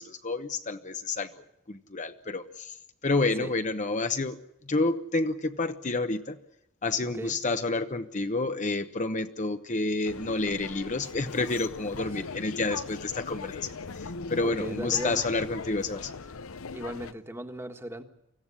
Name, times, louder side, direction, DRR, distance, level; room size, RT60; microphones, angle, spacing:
voice 1, 0.0-2.7 3.0-4.4 4.6-6.4 6.8-16.1, left 3 dB, 35° left, 0.9 m, -29 dB
sound 1, 10.0-17.1, left 4 dB, 75° left, 0.8 m, -40 dB
voice 2, 14.4-15.2 16.7-18.0, equal, 10° right, 1.6 m, -37 dB
25.0 x 16.0 x 9.8 m
head